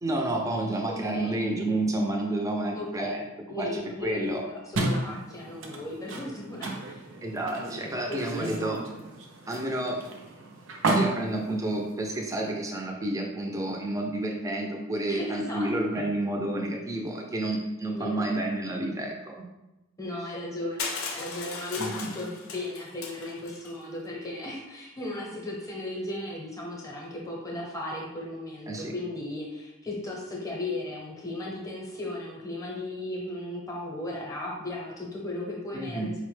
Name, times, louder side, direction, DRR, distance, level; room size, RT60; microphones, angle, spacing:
voice 1, 0.0-3.3 3.6-4.4 7.2-8.8 9.5-10.0 10.9-19.5 21.8-22.1 28.7-28.9 35.7-36.2, right 1 dB, 15° right, 1 dB, 0.4 m, -30 dB
voice 2, 2.7-3.1 3.5-7.0 8.1-8.6 15.0-15.7 17.9-18.3 20.0-36.2, left 1 dB, 15° left, -3 dB, 0.7 m, -36 dB
sound 1, 4.7-12.5, right 2 dB, 65° right, 0.5 m, -33 dB
Crushing, 20.8-23.7, left 4 dB, 80° left, 0.5 m, -37 dB
4.4 x 2.1 x 3.1 m, 0.98 s
head